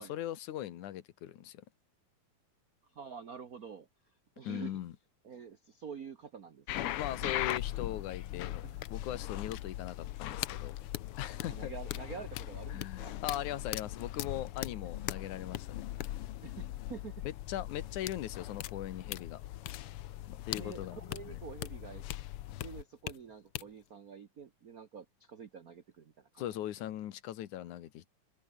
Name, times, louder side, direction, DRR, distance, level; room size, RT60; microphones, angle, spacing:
voice 1, 0.0-1.6 4.4-4.9 7.0-10.8 11.2-11.7 12.7-15.8 17.2-19.4 20.3-21.0 21.2-21.4 26.4-28.1, left 12 dB, 90° left, 2.8 m, -40 dB
voice 2, 2.8-4.8 5.2-6.9 7.2-7.5 8.6-8.8 11.2-13.2 16.4-17.3 20.5-22.0 22.6-26.4, right 6 dB, 80° right, 0.8 m, -48 dB
sound 1, 6.7-23.1 23.5-23.6, left 14 dB, 70° left, 1.4 m, -39 dB
omnidirectional pair, 3.4 m